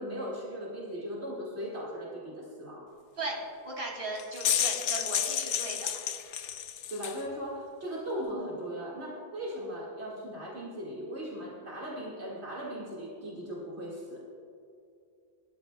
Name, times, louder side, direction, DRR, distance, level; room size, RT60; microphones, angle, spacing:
voice 1, 0.0-2.9 6.9-14.2, equal, 70° right, -5 dB, 2.4 m, -38 dB
voice 2, 3.2-5.8, right 2 dB, 55° right, -1 dB, 2.9 m, -37 dB
sound 1, 4.2-7.2, left 9 dB, 85° left, 1.0 m, -31 dB
28.0 x 13.5 x 2.3 m, 2.5 s
omnidirectional pair, 1.2 m